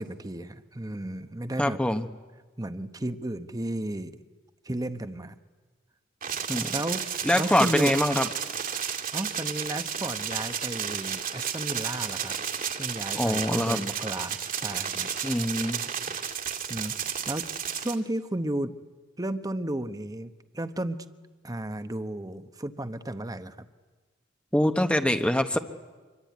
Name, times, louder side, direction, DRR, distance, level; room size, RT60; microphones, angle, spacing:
voice 1, 0.0-1.8 2.6-4.2 4.6-5.4 6.7-7.1 7.4-7.9 9.1-12.3 12.8-15.1 16.7-17.5 17.7-18.7 19.2-21.0 21.4-23.7, right 1 dB, 20° right, 10 dB, 0.9 m, -33 dB
voice 2, 1.6-2.1 6.5-6.7 7.2-8.3 13.2-13.8 15.2-15.8 24.5-25.6, left 1 dB, 5° left, 7 dB, 1.0 m, -24 dB
sound 1, 6.2-17.9, right 8 dB, 45° right, 2.2 m, -32 dB
25.5 x 23.5 x 9.4 m, 1.3 s
head